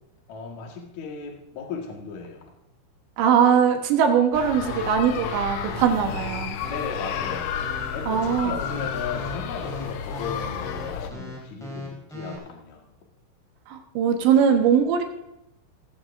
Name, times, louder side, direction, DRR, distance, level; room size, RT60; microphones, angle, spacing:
voice 1, 0.3-2.5 6.7-7.5 7.9-12.8, left 5 dB, 60° left, 0 dB, 2.0 m, -36 dB
voice 2, 3.2-6.6 8.0-8.6 13.7-15.0, right 7 dB, 70° right, 4 dB, 3.2 m, -21 dB
sound 1, 4.3-11.1, left 7 dB, 80° left, 2.3 m, -32 dB
sound 2, 4.6-12.4, left 1 dB, ahead, 3.3 m, -38 dB
18.5 x 15.0 x 2.6 m, 0.83 s
omnidirectional pair, 5.9 m